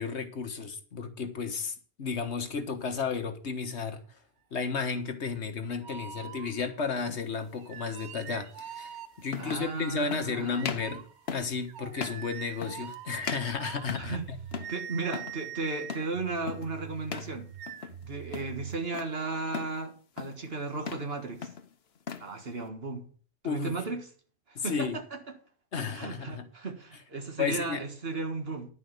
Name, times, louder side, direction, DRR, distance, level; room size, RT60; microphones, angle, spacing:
voice 1, 0.0-4.2 4.5-14.4 23.4-23.7 24.5-25.0 25.7-26.5 27.4-27.8, left 5 dB, 90° left, 1.6 m, -33 dB
sound 1, 5.8-6.9 7.6-9.5 10.6-18.8, right 9 dB, 90° right, 1.0 m, -43 dB
sound 2, 7.1-7.3 8.6-8.7 9.3-9.7 10.1-10.3 10.6-10.9 11.3-11.6 12.0-12.3 12.6-13.0 13.2-14.2 14.5-14.8 15.1-15.4 15.9-16.2 16.5-16.7 17.1-17.4 17.7-18.0 18.3-19.1 19.5-19.8 20.2-20.5 20.8-21.1 21.4-22.3, left 6 dB, 70° left, 1.2 m, -38 dB
voice 2, 9.4-10.7 14.0-14.2 14.7-17.5 18.0-21.5 22.2-23.0 23.4-24.0 24.5-25.4 25.9-28.7, right 3 dB, 65° right, 1.9 m, -35 dB
11.0 x 5.0 x 8.1 m
omnidirectional pair, 1.1 m